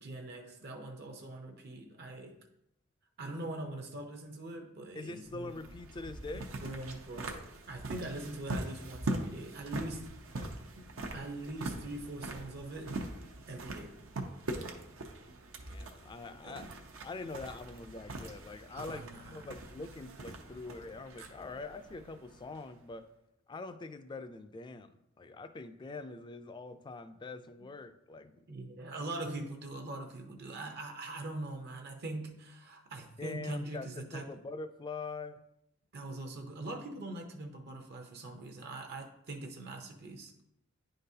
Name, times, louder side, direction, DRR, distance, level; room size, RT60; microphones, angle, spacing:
voice 1, 0.0-2.4 3.2-5.7 6.6-10.2 10.8-13.1 13.5-14.0 16.4-16.6 18.7-19.5 28.5-34.4 35.9-40.3, right 2 dB, 55° right, 0.7 m, -42 dB
voice 2, 5.0-6.5 10.4-10.6 15.7-16.7 17.0-23.1 23.5-28.4 33.2-35.4, left 3 dB, 20° left, 0.3 m, -44 dB
sound 1, 5.2-22.8, right 2 dB, 85° right, 0.7 m, -42 dB
10.0 x 3.8 x 2.7 m
head